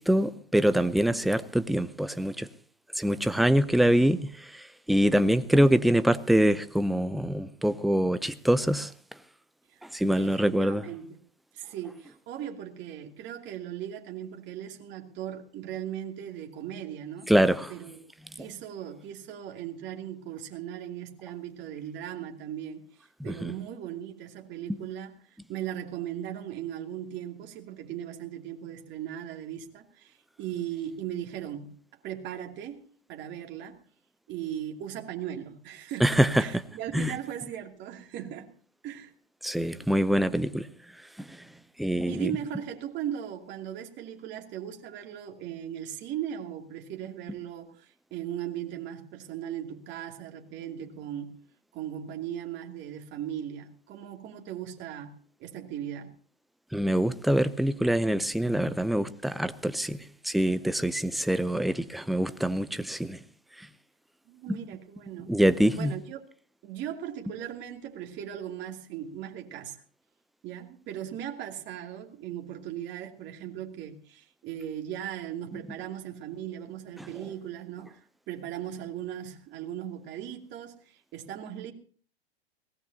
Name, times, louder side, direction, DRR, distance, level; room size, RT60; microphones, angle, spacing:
voice 1, 0.0-2.5 2.9-8.9 9.8-10.8 17.3-17.7 23.2-23.5 36.0-36.6 36.9-37.1 39.4-40.7 41.2-41.5 41.8-42.3 56.7-63.2 63.6-63.7 64.5-64.6 65.3-65.9 77.0-77.1, right 1 dB, ahead, 0.6 m, -25 dB
voice 2, 9.7-11.1 11.5-17.3 17.7-18.0 18.3-31.7 32.0-32.8 33.1-33.8 34.3-38.5 38.8-39.1 42.1-51.4 51.7-56.1 64.3-65.3 65.7-66.2 66.6-69.8 70.4-81.7, right 10 dB, 35° right, 2.7 m, -38 dB
22.0 x 18.5 x 2.8 m
hypercardioid pair, 110°, 30 cm